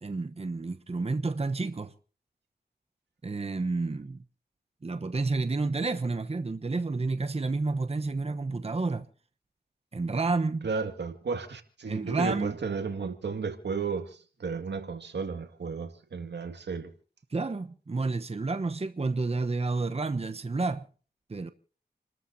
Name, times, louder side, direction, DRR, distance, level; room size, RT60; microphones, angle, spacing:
voice 1, 0.0-1.9 3.2-4.2 4.8-9.1 9.9-10.7 11.9-12.6 17.3-20.8 21.3-21.5, right 3 dB, 35° right, 1.0 m, -30 dB
voice 2, 10.6-16.9, right 5 dB, 85° right, 2.1 m, -33 dB
29.5 x 13.5 x 2.8 m
wide cardioid pair, 65°, 17 cm